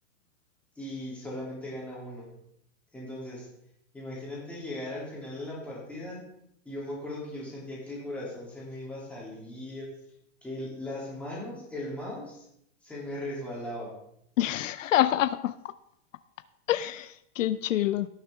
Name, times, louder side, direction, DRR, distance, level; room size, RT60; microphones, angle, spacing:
voice 1, 0.8-2.3 2.9-3.5 3.9-6.3 6.6-9.9 10.4-12.5 12.8-13.9, left 1 dB, 5° left, -6 dB, 2.8 m, -38 dB
voice 2, 14.4-15.5 16.7-18.1, left 13 dB, 80° left, 15 dB, 0.6 m, -26 dB
17.5 x 6.6 x 3.5 m, 0.75 s
supercardioid pair, 170°, 38 cm